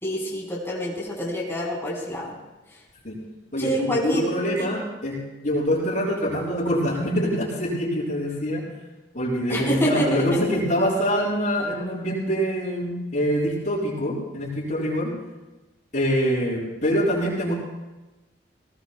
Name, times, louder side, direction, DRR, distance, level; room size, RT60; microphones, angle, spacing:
voice 1, 0.0-2.4 3.6-4.3 4.6-4.7 9.5-10.4, equal, 15° left, -4 dB, 4.2 m, -26 dB
voice 2, 3.5-8.6 9.1-15.1 15.9-17.5, equal, 45° left, -9 dB, 6.2 m, -25 dB
20.5 x 19.0 x 2.2 m, 1.1 s
head